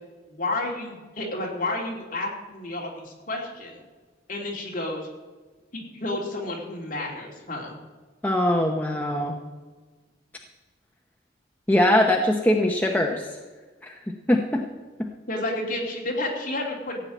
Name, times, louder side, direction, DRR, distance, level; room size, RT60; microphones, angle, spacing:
voice 1, 0.3-3.8 4.3-5.1 5.7-7.7 15.3-17.1, left 2 dB, 45° left, -2 dB, 3.0 m, -31 dB
voice 2, 8.2-9.4 11.7-13.4 13.8-14.0 14.3-14.6 15.0-15.1, left 1 dB, 10° left, 1 dB, 0.7 m, -22 dB
15.0 x 5.7 x 9.1 m, 1.3 s
head